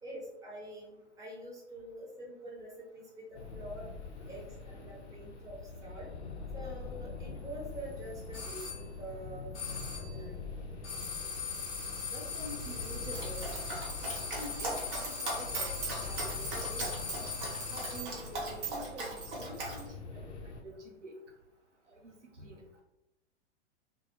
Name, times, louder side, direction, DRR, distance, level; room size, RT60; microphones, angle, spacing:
voice 1, 0.0-3.9 4.3-6.1 6.5-10.4, right 1 dB, 10° right, -5 dB, 0.7 m, -46 dB
sound 1, 3.3-20.6, left 3 dB, 70° left, 0.6 m, -44 dB
sound 2, 8.3-8.8 9.5-10.2 10.8-18.2, left 6 dB, 25° left, 0.8 m, -40 dB
voice 2, 12.1-13.5 14.0-16.9 17.7-21.1 22.0-22.6, equal, 85° right, -1 dB, 0.7 m, -47 dB
Dog, 13.1-19.8, right 2 dB, 50° right, 0.9 m, -39 dB
2.2 x 2.0 x 3.0 m, 0.92 s
figure-of-eight pair, 100°, 35 cm